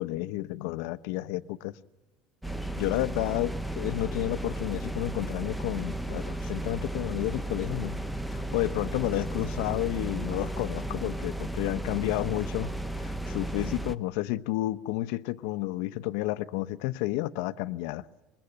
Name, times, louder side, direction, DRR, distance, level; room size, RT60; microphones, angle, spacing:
voice 1, 0.0-1.7 2.8-8.0 8.3-12.7 13.0-18.0, left 17 dB, 80° left, 0.9 m, -31 dB
sound 1, 2.4-14.0, right 1 dB, ahead, 0.9 m, -34 dB
27.0 x 22.0 x 9.9 m
cardioid pair, 140°, 0 cm